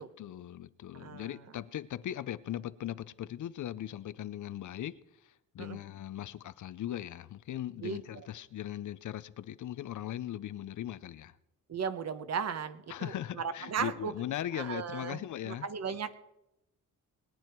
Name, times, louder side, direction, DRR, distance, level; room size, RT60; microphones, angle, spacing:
voice 1, 0.0-11.3 12.9-15.7, left 12 dB, 65° left, 0.6 m, -39 dB
voice 2, 0.9-1.4 5.6-5.8 7.8-8.0 11.7-14.1 14.5-16.2, right 6 dB, 50° right, 1.1 m, -36 dB
21.0 x 9.4 x 4.5 m
cardioid pair, 115°, 32 cm